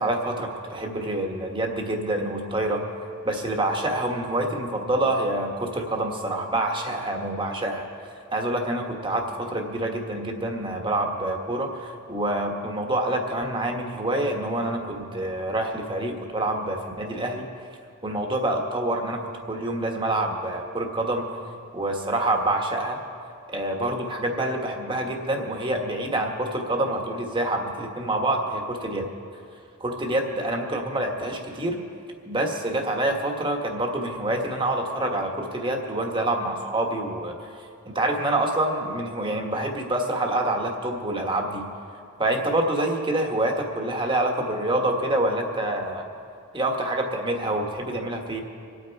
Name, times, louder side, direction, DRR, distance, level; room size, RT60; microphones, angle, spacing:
voice 1, 0.0-2.8 3.2-7.9 8.3-17.4 18.0-19.2 19.5-21.3 21.7-23.0 23.5-29.1 29.8-31.8 32.2-37.3 37.8-41.6 42.2-46.0 46.5-48.4, right 1 dB, 25° right, 2 dB, 1.5 m, -26 dB
25.5 x 8.8 x 4.7 m, 2.4 s
head